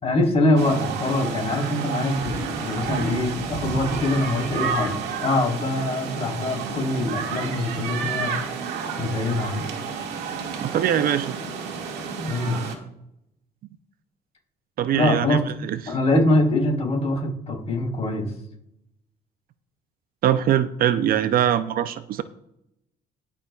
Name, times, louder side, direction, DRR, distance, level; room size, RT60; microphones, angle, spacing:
voice 1, 0.0-8.3 9.0-9.7 12.2-12.6 14.9-15.4 15.9-18.3, left 2 dB, 40° left, -1 dB, 4.0 m, -23 dB
sound 1, 0.6-12.8, right 5 dB, 85° right, 2.0 m, -30 dB
voice 2, 10.6-11.4 14.8-15.9 20.2-22.2, right 10 dB, 60° right, 13 dB, 0.6 m, -22 dB
20.5 x 6.9 x 2.4 m, 0.80 s
cardioid pair, 110°, 17 cm